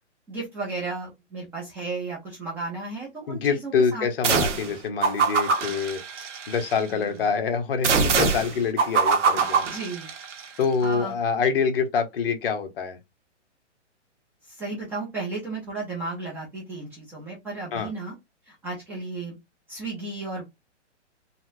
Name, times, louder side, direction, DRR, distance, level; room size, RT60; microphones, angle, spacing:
voice 1, 0.3-4.1 6.8-7.3 9.6-10.1 10.5-11.1 14.4-18.1 18.5-19.4 19.7-20.4, right 3 dB, 5° right, 0.5 m, -34 dB
voice 2, 3.3-6.0 6.5-9.7 10.6-13.0 17.7-17.9, left 5 dB, 50° left, 0.9 m, -26 dB
sound 1, 4.2-4.7 5.0-6.8 7.8-10.4, right 5 dB, 80° right, 1.1 m, -23 dB
4.1 x 2.0 x 2.5 m
hypercardioid pair, 150°, 36 cm